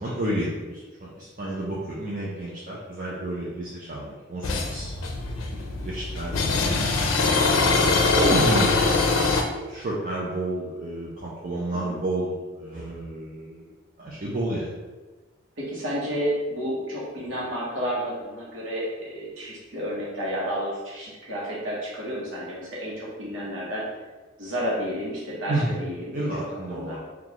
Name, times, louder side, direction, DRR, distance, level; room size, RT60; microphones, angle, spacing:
voice 1, 0.0-6.9 7.5-9.1 9.7-13.7 14.0-14.7 25.5-25.8 26.1-27.0, right 1 dB, 45° right, -5 dB, 0.5 m, -30 dB
sound 1, 4.4-9.4, left 3 dB, 85° left, 0.4 m, -23 dB
voice 2, 15.6-23.8 24.4-26.3 26.7-27.0, equal, 75° right, -6 dB, 1.0 m, -31 dB
3.9 x 2.3 x 3.0 m, 1.3 s
head